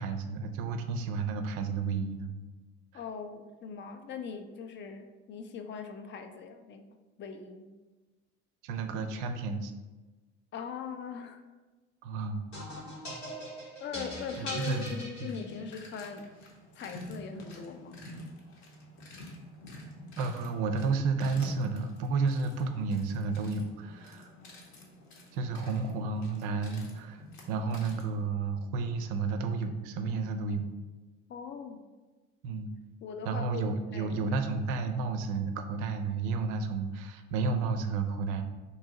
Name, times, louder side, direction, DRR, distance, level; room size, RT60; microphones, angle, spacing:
voice 1, 0.0-2.3 8.6-9.7 12.0-12.4 14.4-15.3 20.2-24.3 25.3-30.7 32.4-32.7 33.2-38.4, right 4 dB, 55° right, 7 dB, 0.5 m, -32 dB
voice 2, 2.9-6.8 7.2-7.7 10.5-11.4 13.8-16.3 16.7-18.0 31.3-31.8 33.0-33.6 33.9-34.1, left 6 dB, 35° left, 6 dB, 0.4 m, -40 dB
sound 1, 12.5-15.9, equal, 85° left, 1.2 m, -41 dB
sound 2, 13.9-28.2, left 1 dB, 50° left, 0.8 m, -49 dB
2.8 x 2.7 x 3.7 m, 1.2 s
figure-of-eight pair, 55°, 36 cm